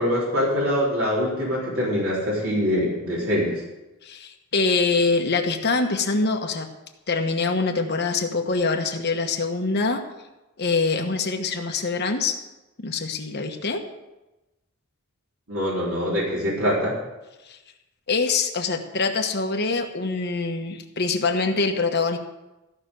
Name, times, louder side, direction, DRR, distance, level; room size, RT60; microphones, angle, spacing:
voice 1, 0.0-3.6 15.5-17.0, equal, 65° right, -6 dB, 3.9 m, -24 dB
voice 2, 4.0-6.7 7.1-10.0 10.6-12.4 12.8-13.8 17.5-17.6 18.1-22.2, left 4 dB, 50° left, 5 dB, 1.1 m, -24 dB
14.5 x 6.0 x 7.7 m, 1.0 s
head